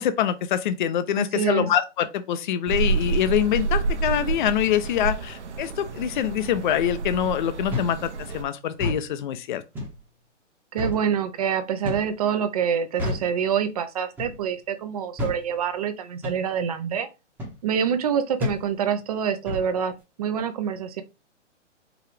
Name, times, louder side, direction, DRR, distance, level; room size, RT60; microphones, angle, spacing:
voice 1, 0.0-9.6, left 10 dB, 40° left, 0.5 m, -25 dB
voice 2, 1.2-1.7 10.7-17.1 17.6-19.9 20.2-21.0, right 8 dB, 35° right, 0.4 m, -26 dB
sound 1, 2.7-8.4, right 4 dB, 70° right, 1.0 m, -29 dB
sound 2, 7.7-8.0 8.7-9.0 9.7-10.0 10.8-11.0 11.8-12.1 13.0-13.3 14.2-14.4 15.2-15.4 16.2-16.4 17.4-17.6 18.4-18.6 19.5-19.7, left 2 dB, 5° right, 0.8 m, -29 dB
4.7 x 2.4 x 3.3 m
hypercardioid pair, 145°, 36 cm